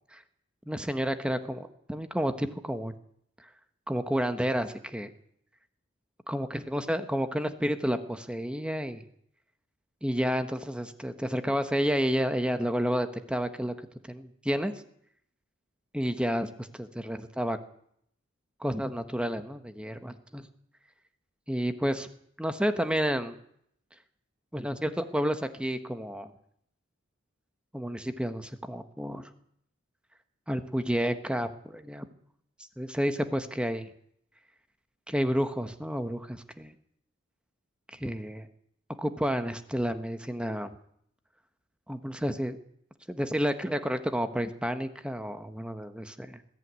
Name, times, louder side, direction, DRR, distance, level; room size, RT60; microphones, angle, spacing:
voice 1, 0.7-2.9 3.9-5.1 6.3-9.0 10.0-13.7 14.1-14.7 15.9-17.6 18.6-20.5 21.5-22.1 22.4-23.4 24.5-26.3 27.7-29.2 30.5-32.1 32.8-33.9 35.1-36.7 37.9-38.5 39.0-40.7 41.9-42.6 43.1-46.4, equal, 5° right, 9 dB, 1.3 m, -30 dB
21.0 x 14.5 x 9.6 m, 0.69 s
head